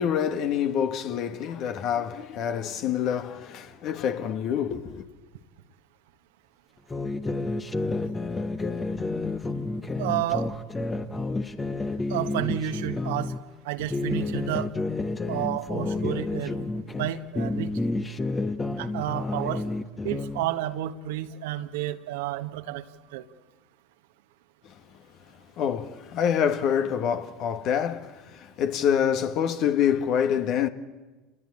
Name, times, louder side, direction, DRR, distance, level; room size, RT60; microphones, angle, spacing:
voice 1, 0.0-5.0 24.6-24.8 25.6-30.7, left 8 dB, 55° left, 1.9 m, -26 dB
sound 1, 6.9-13.4 13.8-17.1 17.4-20.5, left 2 dB, 20° left, 1.3 m, -30 dB
voice 2, 10.0-10.5 12.1-13.3 13.6-14.7 15.3-16.6 17.0-17.7 18.8-19.6 20.0-22.8 23.1-23.2, right 13 dB, 70° right, 1.4 m, -30 dB
29.0 x 20.5 x 8.8 m
hypercardioid pair, 75°, 0 cm